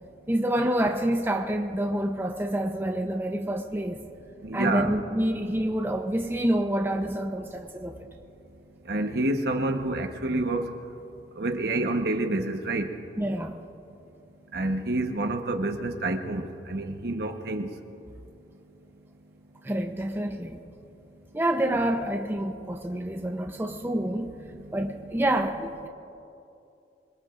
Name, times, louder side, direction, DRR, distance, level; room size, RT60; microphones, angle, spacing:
voice 1, 0.3-4.0 4.5-8.0 13.2-13.5 19.6-20.6 21.3-24.4 24.7-25.9, right 1 dB, 15° right, 3 dB, 0.7 m, -27 dB
voice 2, 4.4-4.9 8.9-10.7 11.4-13.0 14.5-17.7, right 2 dB, 65° right, 5 dB, 1.1 m, -28 dB
26.0 x 22.0 x 2.5 m, 2.6 s
head